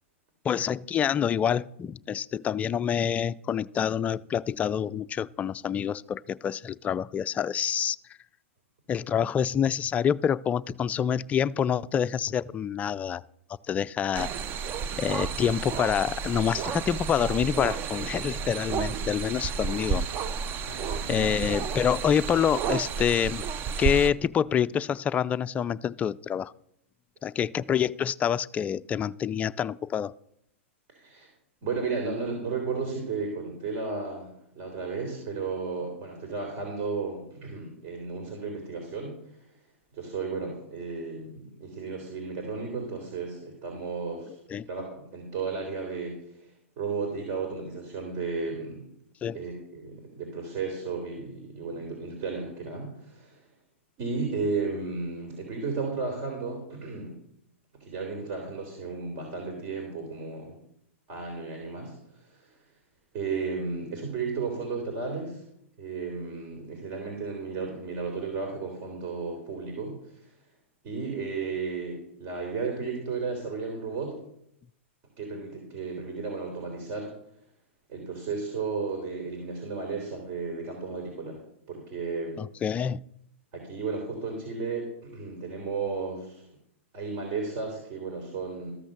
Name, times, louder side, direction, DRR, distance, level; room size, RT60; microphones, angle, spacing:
voice 1, 0.4-8.0 8.9-13.2 13.7-14.3 15.0-20.1 21.1-23.4 23.8-26.5 27.2-30.1 44.5-44.7 49.2-49.4 82.4-83.0, left 8 dB, 20° left, 14 dB, 0.3 m, -27 dB
sound 1, 14.1-24.1, right 6 dB, 30° right, 0.6 m, -31 dB
voice 2, 20.7-21.4 30.9-31.3 31.6-39.5 39.9-44.4 44.7-48.8 49.3-53.5 54.0-57.2 57.7-60.6 61.1-62.6 63.1-65.4 65.8-70.3 70.8-74.2 75.2-77.1 77.9-81.4 81.7-82.4 83.5-86.5 86.9-88.7, right 4 dB, 45° right, 2 dB, 3.4 m, -34 dB
13.5 x 6.2 x 6.6 m, 0.76 s
hypercardioid pair, 120°, 7 cm